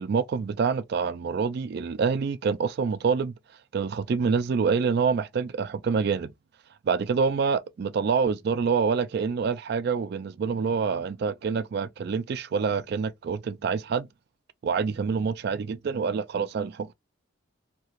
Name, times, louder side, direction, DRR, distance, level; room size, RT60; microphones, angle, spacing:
voice 1, 0.0-3.3 3.7-6.3 6.8-14.1 14.6-16.9, right 5 dB, 55° right, 0.3 m, -26 dB
2.9 x 2.4 x 2.9 m
head